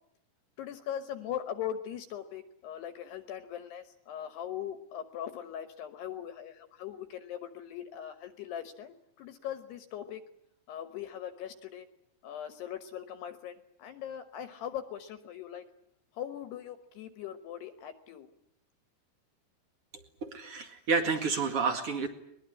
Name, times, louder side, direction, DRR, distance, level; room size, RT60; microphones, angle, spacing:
voice 1, 0.6-10.2 10.7-11.9 12.2-15.6 16.2-18.3, left 10 dB, 70° left, 11 dB, 2.7 m, -40 dB
voice 2, 20.2-22.1, right 5 dB, 60° right, 7 dB, 1.5 m, -30 dB
22.5 x 21.5 x 9.8 m, 0.74 s
omnidirectional pair, 5.9 m